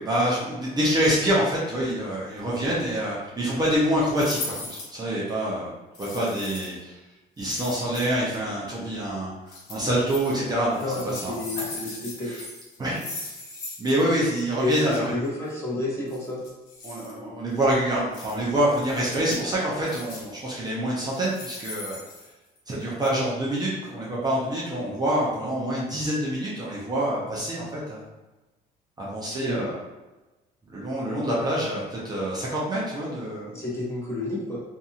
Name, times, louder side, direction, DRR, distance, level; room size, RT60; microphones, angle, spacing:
voice 1, 0.0-5.7 6.0-7.0 7.4-9.3 9.7-11.7 12.2-12.4 12.8-13.0 13.8-15.2 16.8-22.0 22.7-28.1 29.0-29.8 30.7-33.6, right 1 dB, 25° right, -6 dB, 0.6 m, -26 dB
sound 1, 4.2-5.0 5.9-6.8 7.4-8.4 9.5-10.4 10.7-14.0 14.3-14.4 14.7-15.0 16.1-17.1 18.1-18.3 18.7-19.4 19.8-20.4 21.1-22.7 23.0-23.1, left 2 dB, 85° left, 0.9 m, -39 dB
voice 2, 10.8-12.3 14.6-16.4 29.3-29.7 33.5-34.6, left 2 dB, 15° left, -6 dB, 1.0 m, -30 dB
2.7 x 2.6 x 2.4 m, 1.1 s
cardioid pair, 110°, 17 cm